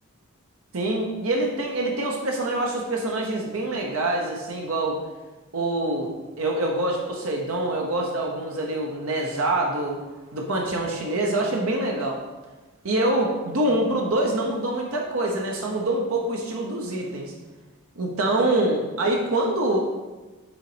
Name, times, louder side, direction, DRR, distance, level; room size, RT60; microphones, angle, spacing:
voice 1, 0.7-5.0 5.5-10.0 10.3-12.2 12.8-17.3 18.0-19.8, right 1 dB, 80° right, 0 dB, 0.9 m, -25 dB
7.3 x 4.0 x 4.9 m, 1.2 s
head